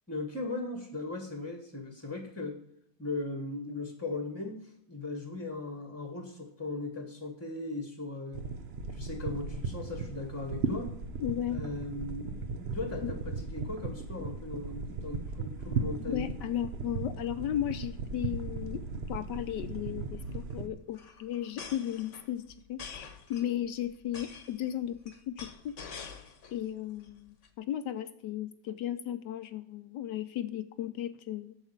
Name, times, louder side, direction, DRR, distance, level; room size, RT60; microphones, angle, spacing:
voice 1, 0.1-2.6 3.0-8.4 8.9-10.9 11.5-16.3, left 2 dB, 10° left, 5 dB, 1.0 m, -38 dB
sound 1, 8.3-20.7, right 4 dB, 65° right, 0.6 m, -37 dB
voice 2, 11.2-11.6 13.0-13.1 16.0-22.4 22.7-26.1 26.5-31.6, left 11 dB, 70° left, 11 dB, 1.2 m, -35 dB
sound 2, 18.0-18.2 18.5-18.6 18.8-19.0 20.0-26.6 27.0-27.5, left 5 dB, 45° left, 1.2 m, -47 dB
8.2 x 7.4 x 7.1 m, 0.73 s
omnidirectional pair, 2.2 m